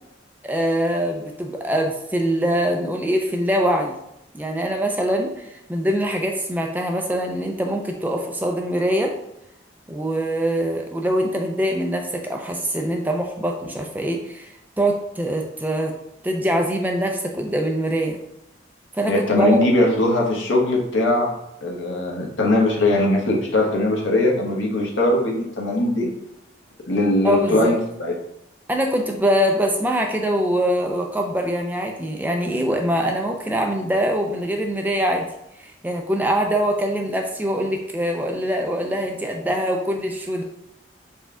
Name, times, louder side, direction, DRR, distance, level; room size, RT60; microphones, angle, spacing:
voice 1, 0.4-3.9 4.3-9.1 9.9-15.9 16.2-18.2 18.9-19.6 27.2-27.7 28.7-35.3 35.6-40.4, equal, 10° right, 2 dB, 0.3 m, -23 dB
voice 2, 19.1-21.3 21.6-26.1 26.9-28.1, left 1 dB, 85° left, -1 dB, 0.9 m, -20 dB
4.2 x 2.2 x 3.5 m, 0.82 s
head